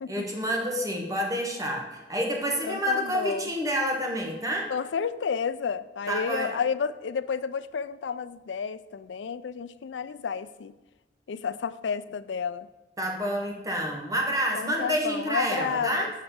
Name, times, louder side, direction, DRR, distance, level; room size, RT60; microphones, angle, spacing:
voice 1, 0.1-4.7 6.1-6.5 13.0-16.1, equal, 20° right, 0 dB, 1.5 m, -28 dB
voice 2, 2.4-3.5 4.7-10.7 11.3-12.7 14.5-16.1, left 6 dB, 90° left, 14 dB, 0.4 m, -31 dB
7.4 x 4.9 x 7.0 m, 1.2 s
head